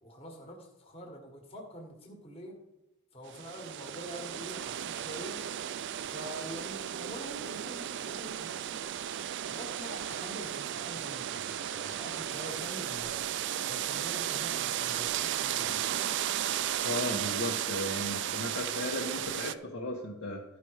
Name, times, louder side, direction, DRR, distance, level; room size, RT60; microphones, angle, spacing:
voice 1, 0.0-2.6 3.1-5.4 6.1-8.8 9.5-13.3 13.6-16.1, equal, 25° left, 1 dB, 1.6 m, -45 dB
sound 1, 3.3-19.5, right 10 dB, 55° right, 0.3 m, -34 dB
voice 2, 16.8-20.4, left 2 dB, 65° left, -4 dB, 1.3 m, -35 dB
12.5 x 5.1 x 4.8 m, 1.0 s
head